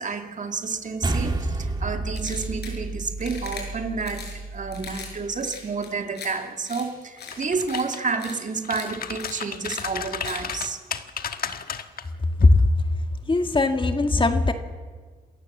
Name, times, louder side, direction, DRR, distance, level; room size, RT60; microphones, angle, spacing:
voice 1, 0.0-10.8, right 4 dB, 50° right, 5 dB, 2.2 m, -30 dB
sound 1, 1.0-5.6, right 2 dB, 25° right, 2.5 m, -31 dB
sound 2, 2.1-2.8 3.2-3.6 4.0-4.4 4.7-5.1 5.4-6.3 6.7-6.8 7.2-7.4 7.7-7.8 8.2-8.4 8.7-8.9 9.2-9.3 9.7-9.8 10.2-10.4, left 6 dB, 80° left, 5.9 m, -39 dB
sound 3, 7.2-8.2 8.6-12.0 12.4-12.6, left 7 dB, 65° left, 1.3 m, -33 dB
voice 2, 13.3-14.5, left 2 dB, 30° left, 6 dB, 1.9 m, -19 dB
27.5 x 15.0 x 7.4 m, 1.5 s
cardioid pair, 75°, 17 cm